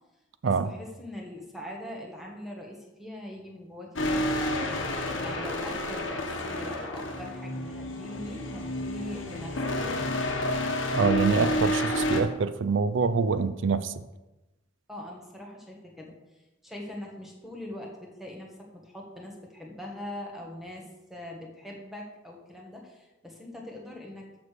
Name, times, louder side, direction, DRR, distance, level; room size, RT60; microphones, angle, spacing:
voice 1, 0.4-4.3 5.2-9.6 14.9-16.1 16.6-24.3, left 1 dB, ahead, 1.5 m, -42 dB
sound 1, 4.0-12.2, left 1 dB, 70° left, 1.3 m, -30 dB
voice 2, 10.9-13.9, right 5 dB, 65° right, 0.5 m, -25 dB
6.8 x 6.7 x 6.7 m
head